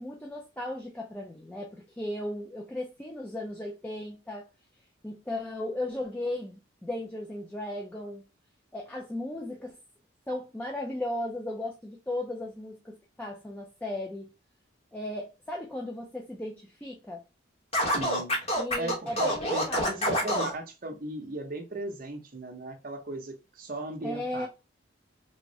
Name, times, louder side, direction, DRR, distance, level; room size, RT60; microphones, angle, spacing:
voice 1, 0.0-4.5 5.0-8.2 8.7-9.8 10.3-14.3 14.9-17.2 18.6-20.1 24.0-24.5, left 1 dB, 10° left, 0.3 m, -36 dB
Scratching (performance technique), 17.7-20.5, equal, 30° left, 0.9 m, -27 dB
voice 2, 17.9-18.4 18.7-24.5, right 2 dB, 45° right, 0.7 m, -37 dB
3.4 x 2.1 x 2.6 m
head